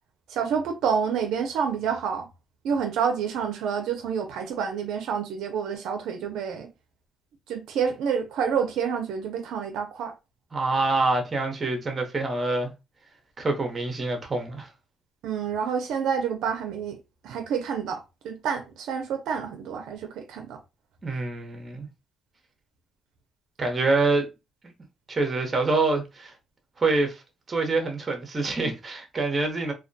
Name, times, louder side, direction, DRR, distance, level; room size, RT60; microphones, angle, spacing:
voice 1, 0.3-2.3 2.6-6.7 7.5-10.1 15.2-17.0 17.2-20.6, right 7 dB, 85° right, 0.4 m, -28 dB
voice 2, 10.5-12.7 13.4-14.7 21.0-21.9 23.6-24.3 25.1-26.3 26.8-27.2 27.5-29.7, right 3 dB, 35° right, 0.8 m, -26 dB
2.2 x 2.1 x 2.6 m
cardioid pair, 90°, 0 cm